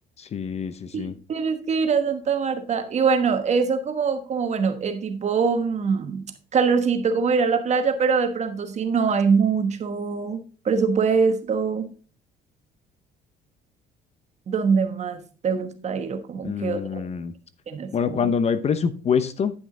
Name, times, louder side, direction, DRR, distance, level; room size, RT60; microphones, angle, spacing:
voice 1, 0.3-1.1 16.4-17.3 17.9-19.5, left 6 dB, 40° left, 13 dB, 0.8 m, -25 dB
voice 2, 0.9-6.3 6.5-11.9 14.5-17.0 17.7-18.3, right 5 dB, 40° right, 8 dB, 1.2 m, -23 dB
10.0 x 6.0 x 3.8 m, 0.39 s
cardioid pair, 110°, 17 cm